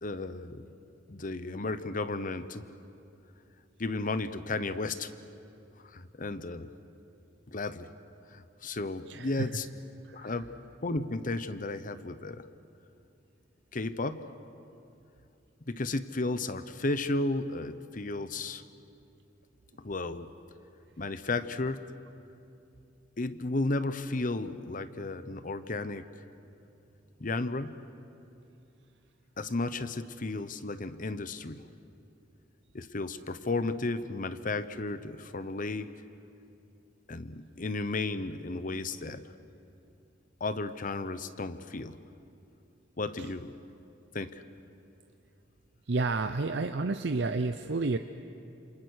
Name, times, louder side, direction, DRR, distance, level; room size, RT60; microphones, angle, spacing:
voice 1, 0.0-0.7 1.1-2.6 3.8-5.1 5.9-6.7 7.5-7.9 8.3-9.7 10.1-10.5 10.8-12.4 13.7-14.3 15.7-18.6 19.8-20.3 21.0-21.9 23.2-26.1 27.2-27.8 29.4-31.6 32.7-35.9 37.1-39.2 40.4-42.0 43.0-43.5 44.1-44.4, left 2 dB, 45° left, 12 dB, 0.9 m, -33 dB
voice 2, 9.1-9.5 10.0-10.4 43.2-43.3 45.9-48.0, right 3 dB, 65° right, 8 dB, 0.7 m, -31 dB
28.0 x 27.0 x 6.5 m, 2.7 s
head